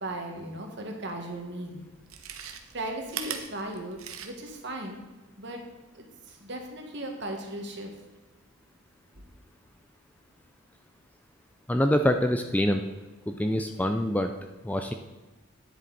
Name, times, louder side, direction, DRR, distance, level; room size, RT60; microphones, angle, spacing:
voice 1, 0.0-1.8 2.7-5.0 5.4-5.6 5.9-7.9 9.1-9.2, right 1 dB, 55° right, 2 dB, 1.6 m, -37 dB
Chewing mastication, 2.0-4.6 5.0-5.1, right 8 dB, 85° right, 0.9 m, -39 dB
voice 2, 11.7-12.8 13.3-14.3 14.6-14.9, left 1 dB, 5° left, 6 dB, 0.4 m, -25 dB
10.5 x 7.7 x 4.0 m, 1.2 s
head